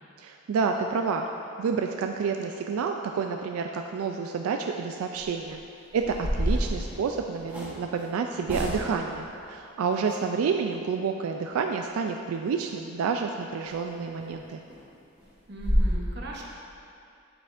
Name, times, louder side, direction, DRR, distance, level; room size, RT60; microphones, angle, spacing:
voice 1, 0.2-1.3 1.6-5.6 5.9-14.6, right 5 dB, 90° right, 4 dB, 0.3 m, -29 dB
sound 1, 5.1-5.4 6.0-7.8 8.4-9.1 13.6-13.8 14.2-14.3 14.7-14.8 15.2-15.3 15.6-15.9, equal, 10° right, 1.0 m, -28 dB
voice 2, 9.8-10.3 15.5-16.4, right 2 dB, 50° right, -2 dB, 0.9 m, -40 dB
7.7 x 7.4 x 2.5 m, 2.5 s
head